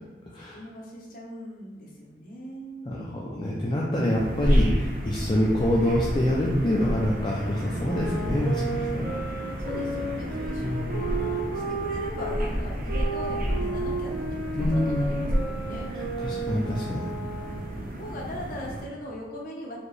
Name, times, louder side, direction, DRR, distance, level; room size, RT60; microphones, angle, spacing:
voice 1, 0.3-3.3 9.6-15.9 17.8-19.8, equal, 45° left, -3 dB, 0.9 m, -39 dB
voice 2, 2.9-9.2 10.6-11.0 14.6-15.1 15.9-17.0, left 1 dB, 25° left, -4 dB, 0.4 m, -26 dB
sound 1, 4.1-18.9, equal, 50° right, 0.6 m, -31 dB
sound 2, 7.7-12.4 12.9-17.8, right 2 dB, 70° right, 1.0 m, -33 dB
4.3 x 2.8 x 3.2 m, 1.2 s
head